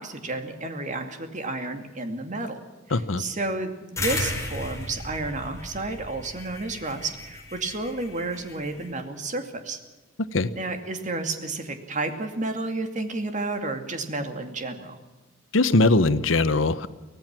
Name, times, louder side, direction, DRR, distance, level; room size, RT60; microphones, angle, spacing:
voice 1, 0.0-2.6 2.9-9.8 10.5-15.0, right 2 dB, 40° right, 6 dB, 2.4 m, -31 dB
voice 2, 2.9-3.2 10.3-10.5 15.5-16.9, left 2 dB, 90° left, 13 dB, 1.0 m, -20 dB
sound 1, 4.0-8.9, left 2 dB, 15° left, 5.0 m, -34 dB
24.5 x 17.5 x 6.1 m, 1.2 s
head